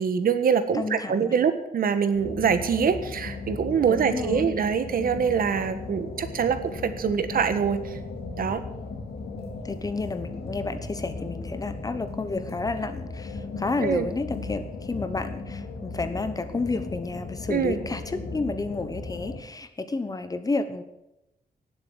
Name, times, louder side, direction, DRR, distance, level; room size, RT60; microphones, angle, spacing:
voice 1, 0.0-8.0 8.4-8.6 13.8-14.1 17.5-17.8, right 6 dB, 65° right, 11 dB, 1.4 m, -24 dB
voice 2, 0.7-1.3 3.9-4.5 9.6-20.8, left 3 dB, 25° left, 10 dB, 1.1 m, -31 dB
sound 1, 2.1-19.4, left 3 dB, 80° left, 3.4 m, -36 dB
17.5 x 7.9 x 8.0 m, 0.89 s
wide cardioid pair, 165°, 16 cm